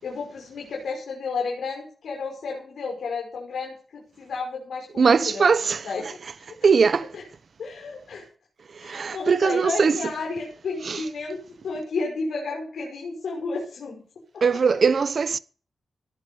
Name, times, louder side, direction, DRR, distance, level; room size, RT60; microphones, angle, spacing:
voice 1, 0.0-6.5 7.1-7.2 7.6-8.2 8.8-11.4 11.6-14.0 14.3-14.4, left 4 dB, 70° left, 6.0 m, -32 dB
voice 2, 5.0-6.1 6.6-7.2 8.7-10.0 10.8-11.0 14.4-15.4, right 5 dB, 45° right, 0.9 m, -21 dB
18.0 x 11.0 x 5.5 m
wide cardioid pair, 155°, 0 cm